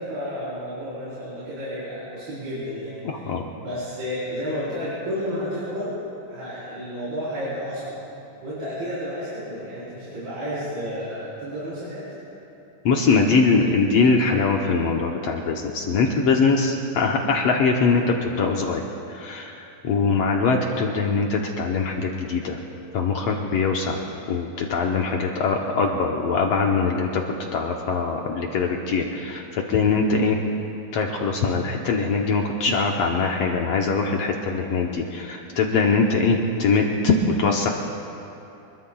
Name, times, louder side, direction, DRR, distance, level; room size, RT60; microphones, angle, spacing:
voice 1, 0.0-3.0 3.6-6.0 6.3-8.0 8.4-12.2, equal, 80° right, -10 dB, 6.1 m, -31 dB
voice 2, 3.0-3.4 12.8-18.8 19.1-22.6 22.9-24.0 24.3-27.2 27.5-30.4 30.9-37.1 37.4-37.7, left 4 dB, 75° left, 0 dB, 1.4 m, -22 dB
26.5 x 22.5 x 2.3 m, 2.8 s
omnidirectional pair, 4.1 m